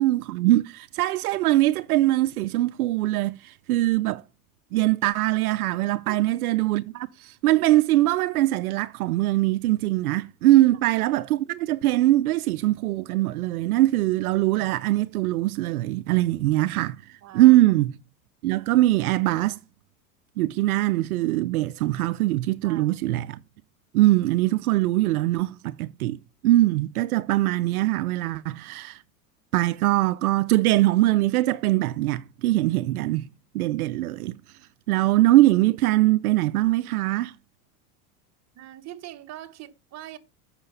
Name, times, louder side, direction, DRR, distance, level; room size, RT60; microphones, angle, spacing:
voice 1, 0.0-4.2 4.7-17.0 17.3-17.9 18.4-19.6 20.4-23.4 23.9-29.0 29.5-33.3 33.5-34.4 34.9-37.3, right 16 dB, 85° right, 0.6 m, -22 dB
voice 2, 17.2-17.6 22.6-23.0 38.5-40.2, right 13 dB, 35° right, 1.2 m, -42 dB
7.9 x 5.9 x 5.4 m
hypercardioid pair, 105°, 43 cm